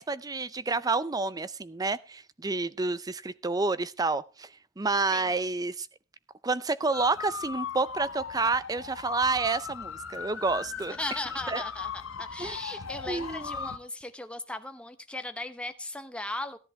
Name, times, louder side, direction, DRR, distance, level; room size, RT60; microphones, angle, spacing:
voice 1, 0.0-4.5 4.8-5.9 6.4-11.0 11.5-11.6 12.4-12.7 13.1-13.7, right 3 dB, 20° right, 16 dB, 0.5 m, -29 dB
sound 1, 6.9-13.8, left 6 dB, 85° left, 0.9 m, -38 dB
voice 2, 11.0-16.6, left 2 dB, 5° left, 8 dB, 0.9 m, -37 dB
15.5 x 10.5 x 3.2 m, 0.29 s
head